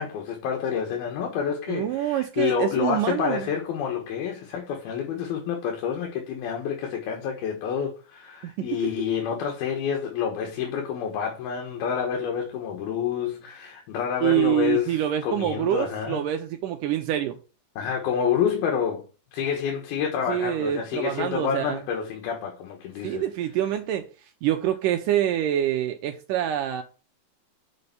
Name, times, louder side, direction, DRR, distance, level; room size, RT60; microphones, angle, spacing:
voice 1, 0.0-16.2 17.8-19.0 19.3-23.2, left 7 dB, 75° left, 3.1 m, -28 dB
voice 2, 1.7-3.5 8.6-8.8 14.2-17.4 20.3-21.8 23.0-24.0 24.4-26.8, right 12 dB, 85° right, 1.9 m, -26 dB
6.8 x 5.2 x 6.8 m
omnidirectional pair, 4.6 m